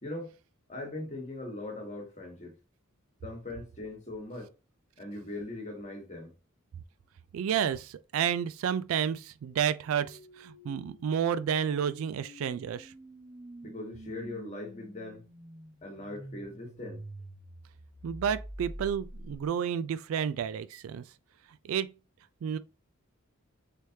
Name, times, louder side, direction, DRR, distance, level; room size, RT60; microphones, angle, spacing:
voice 1, 0.0-0.3 0.7-2.5 3.2-4.5 5.0-6.3 13.6-15.2 15.8-17.0, left 2 dB, 35° left, 1.3 m, -40 dB
voice 2, 7.3-12.9 18.0-21.0 21.6-21.9 22.4-22.6, right 8 dB, 75° right, 0.3 m, -31 dB
sound 1, 9.4-19.5, right 1 dB, 20° right, 1.0 m, -48 dB
3.3 x 3.1 x 2.7 m
head